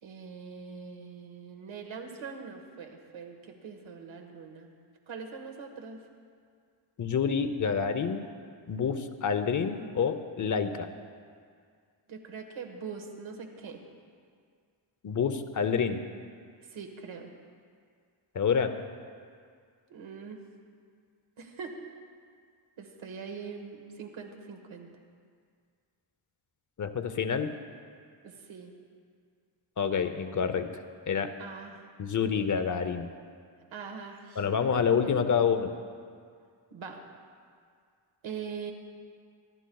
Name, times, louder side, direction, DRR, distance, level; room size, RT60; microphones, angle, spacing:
voice 1, 0.0-4.7 5.1-6.0 12.1-13.8 16.6-17.3 19.9-20.4 21.4-21.8 22.8-24.9 28.2-28.8 31.4-31.9 33.7-34.4 34.8-35.5 36.7-37.0 38.2-38.7, right 6 dB, 75° right, 3 dB, 1.6 m, -42 dB
voice 2, 7.0-8.3 8.7-10.9 15.0-16.0 18.3-18.8 26.8-27.5 29.8-31.4 32.0-33.1 34.4-35.7, left 6 dB, 40° left, 8 dB, 0.7 m, -28 dB
25.5 x 11.5 x 2.3 m, 2.1 s
wide cardioid pair, 135°, 47 cm